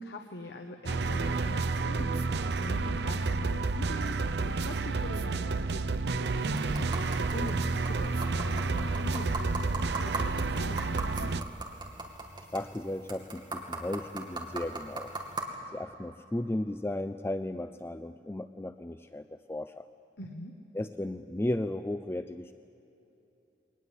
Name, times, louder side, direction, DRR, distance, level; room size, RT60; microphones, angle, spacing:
voice 1, 0.0-11.3 20.2-20.6, left 1 dB, 70° left, 4 dB, 1.3 m, -43 dB
sound 1, 0.9-11.4, right 3 dB, 65° right, 0.7 m, -30 dB
sound 2, 6.4-15.4, right 2 dB, 25° right, 2.4 m, -40 dB
voice 2, 12.5-15.1 15.7-19.9 20.7-22.5, left 1 dB, 15° left, 10 dB, 0.4 m, -35 dB
22.5 x 19.5 x 8.2 m, 3.0 s
head